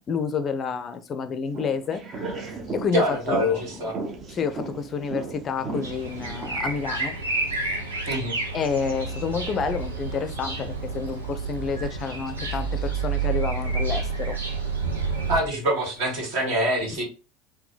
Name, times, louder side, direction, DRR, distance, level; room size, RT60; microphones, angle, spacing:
voice 1, 0.0-3.9 4.3-7.2 8.5-14.4, left 6 dB, 35° left, 0.4 m, -29 dB
sound 1, 1.5-6.7, right 3 dB, 40° right, 0.7 m, -36 dB
voice 2, 2.9-4.0 8.1-8.4 15.3-17.0, equal, 60° right, 1.7 m, -25 dB
sound 2, 5.8-15.4, right 4 dB, 80° right, 0.7 m, -29 dB
3.8 x 2.2 x 3.8 m
figure-of-eight pair, 75°, 0 cm